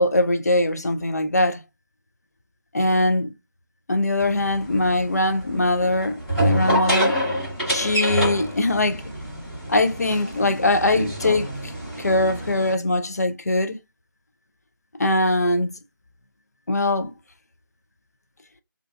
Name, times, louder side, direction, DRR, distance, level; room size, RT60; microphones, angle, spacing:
voice 1, 0.0-1.6 2.7-3.3 3.9-7.2 7.7-9.0 9.7-11.7 12.0-13.8 15.0-15.8 16.7-17.1, left 2 dB, 50° left, 0.4 m, -22 dB
sound 1, 4.2-12.7, equal, ahead, 0.8 m, -27 dB
2.5 x 2.2 x 2.4 m
figure-of-eight pair, 160°, 11 cm